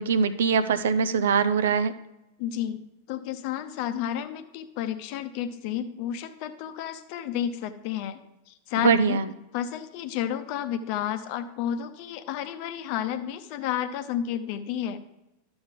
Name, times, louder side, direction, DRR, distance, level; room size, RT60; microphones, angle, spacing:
voice 1, 0.0-1.9 8.8-9.3, right 6 dB, 60° right, 12 dB, 0.5 m, -22 dB
voice 2, 2.4-8.2 8.5-9.2 9.5-15.0, left 10 dB, 45° left, 9 dB, 0.8 m, -31 dB
12.0 x 6.9 x 3.7 m, 0.93 s
figure-of-eight pair, 90°, 0 cm